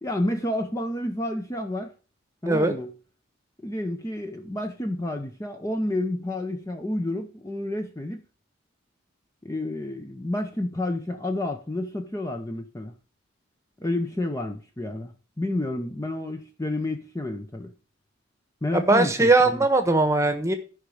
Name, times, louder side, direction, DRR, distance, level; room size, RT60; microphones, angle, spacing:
voice 1, 0.0-1.9 2.4-2.9 3.6-8.2 9.4-12.9 13.8-17.7 18.6-19.6, left 1 dB, 15° left, 0.7 m, -30 dB
voice 2, 18.7-20.5, right 2 dB, 15° right, 1.2 m, -20 dB
13.5 x 5.3 x 5.0 m
head